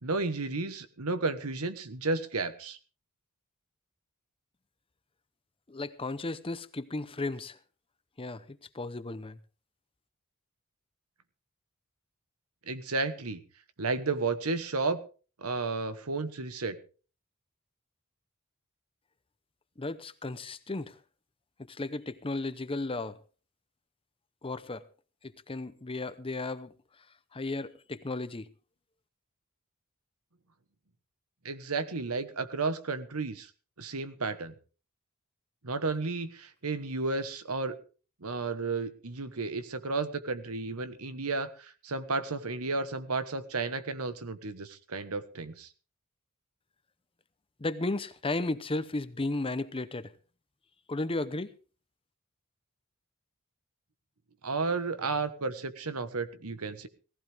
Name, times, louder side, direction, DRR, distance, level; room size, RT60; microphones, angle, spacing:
voice 1, 0.0-2.8 12.7-13.4 13.8-15.0 15.4-16.8 31.4-33.5 33.8-34.5 35.6-37.8 38.2-45.7 54.4-56.9, right 3 dB, 80° right, 1.3 m, -32 dB
voice 2, 5.7-7.6 8.2-9.4 19.8-20.9 21.7-23.2 24.4-24.8 25.5-26.7 27.3-28.5 47.6-50.1 50.9-51.5, left 2 dB, 25° left, 0.8 m, -34 dB
18.0 x 15.5 x 3.5 m
head